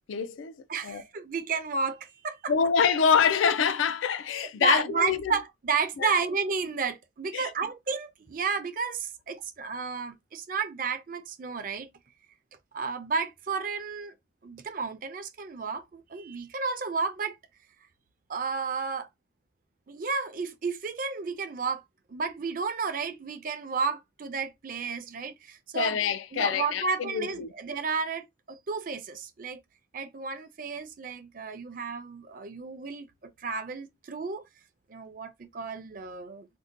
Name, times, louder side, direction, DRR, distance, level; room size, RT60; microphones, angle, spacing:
voice 1, 0.1-0.6 0.8-1.0 2.5-5.3 6.0-6.2 7.3-7.5 25.7-27.5, left 7 dB, 85° left, 0.4 m, -26 dB
voice 2, 0.7-2.5 4.6-11.9 12.7-14.1 14.4-17.4 18.3-19.1 19.9-21.8 22.1-26.0 26.3-29.6 29.9-34.4 34.9-36.5, right 5 dB, 45° right, 0.5 m, -32 dB
2.6 x 2.1 x 3.8 m
head